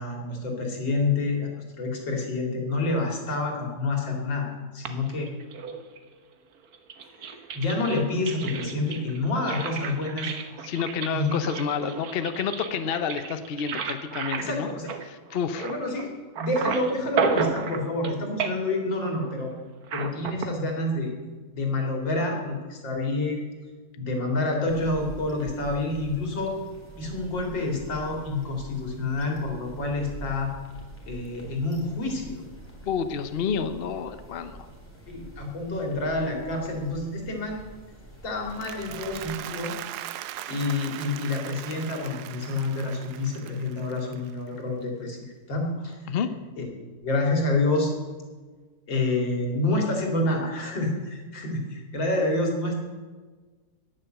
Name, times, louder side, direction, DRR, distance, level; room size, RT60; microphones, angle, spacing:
voice 1, 0.0-1.5 1.8-5.3 7.5-10.3 11.1-11.3 13.0-13.1 14.4-14.9 15.6-16.1 16.3-19.5 19.9-21.1 21.5-23.5 24.0-26.5 27.0-30.5 31.1-32.4 35.1-37.6 38.2-39.7 40.5-46.0 46.6-46.7 47.0-47.9 48.9-52.8, left 2 dB, 80° left, 1 dB, 3.2 m, -28 dB
sound 1, 4.8-6.1 6.7-16.1 16.4-18.1 18.4-18.8 19.8-20.5, right 6 dB, 55° right, 1.4 m, -33 dB
voice 2, 10.6-14.7 15.0-15.7 32.9-34.7 46.1-46.3, left 6 dB, 55° left, 10 dB, 0.6 m, -29 dB
sound 2, 24.7-39.4, right 1 dB, 5° left, 3.4 m, -45 dB
Applause, 38.3-44.7, right 13 dB, 70° right, 1.0 m, -40 dB
10.5 x 9.7 x 7.7 m, 1.4 s
omnidirectional pair, 2.0 m